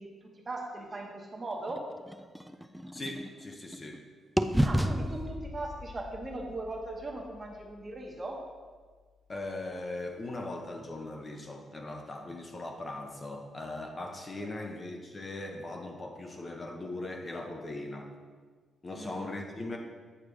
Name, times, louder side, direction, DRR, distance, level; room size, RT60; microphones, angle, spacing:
voice 1, 0.0-1.9 4.6-8.5 14.4-14.7 18.9-19.5, right 2 dB, 25° right, 1 dB, 1.1 m, -39 dB
sound 1, 1.7-4.0 4.4-8.3, equal, 5° right, 0.3 m, -33 dB
voice 2, 2.9-4.0 9.3-18.1 18.8-19.8, left 2 dB, 25° left, 3 dB, 0.7 m, -39 dB
8.7 x 3.3 x 6.2 m, 1.5 s
cardioid pair, 125°, 0 cm